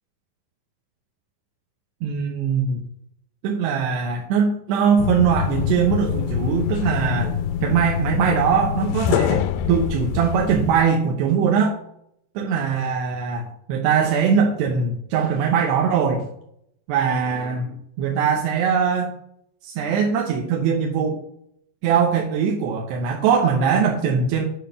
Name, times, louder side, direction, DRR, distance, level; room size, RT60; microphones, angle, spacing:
voice 1, 2.0-2.8 3.4-11.7 12.4-16.3 16.9-19.1 19.6-21.2 21.8-24.5, right 6 dB, 75° right, 1 dB, 3.1 m, -21 dB
sound 1, 5.0-10.9, left 9 dB, 85° left, 2.1 m, -25 dB
10.0 x 6.0 x 6.9 m, 0.72 s
omnidirectional pair, 5.0 m